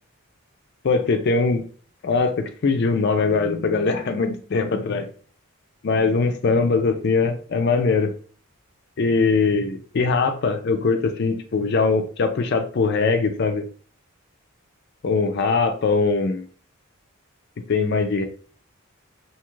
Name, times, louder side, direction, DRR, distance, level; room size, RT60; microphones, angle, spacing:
voice 1, 0.8-1.6 2.0-5.1 5.8-8.1 9.0-13.6 15.0-16.5 17.7-18.2, left 4 dB, 50° left, 7 dB, 0.4 m, -21 dB
2.8 x 2.3 x 3.0 m, 0.43 s
head